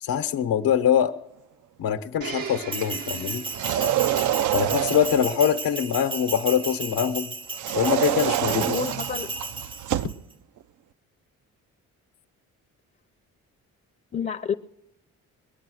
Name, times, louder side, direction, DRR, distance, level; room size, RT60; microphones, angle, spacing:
voice 1, 0.0-1.1 1.8-3.4 4.5-7.3 7.7-8.8, left 9 dB, 80° left, 1.0 m, -23 dB
Domestic sounds home sounds, 2.2-7.0 7.8-7.9, right 6 dB, 80° right, 1.2 m, -41 dB
Bell, 2.7-10.1, right 3 dB, 15° right, 0.5 m, -34 dB
sound 1, 3.5-5.3 7.5-10.2, right 11 dB, 60° right, 0.5 m, -26 dB
voice 2, 8.4-9.3 14.1-14.5, left 7 dB, 25° left, 0.6 m, -29 dB
21.5 x 8.9 x 6.4 m
cardioid pair, 70°, 34 cm